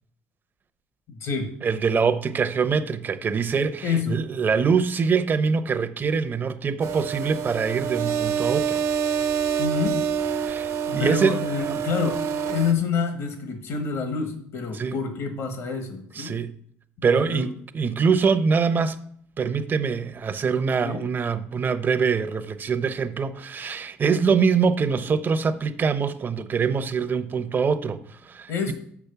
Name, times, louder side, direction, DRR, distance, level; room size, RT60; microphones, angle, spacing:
voice 1, 1.1-1.5 3.8-4.2 9.6-10.0 10.9-16.4 17.1-17.4 20.8-21.0 28.5-28.7, left 5 dB, 70° left, 1.3 m, -27 dB
voice 2, 1.6-8.8 10.5-11.4 11.7-11.8 14.7-15.0 16.1-16.5 17.0-19.0 19.4-28.7, right 5 dB, 35° right, 0.8 m, -24 dB
sound 1, 6.8-12.7, right 7 dB, 70° right, 1.2 m, -27 dB
6.5 x 6.0 x 6.8 m
supercardioid pair, 90°, 5 cm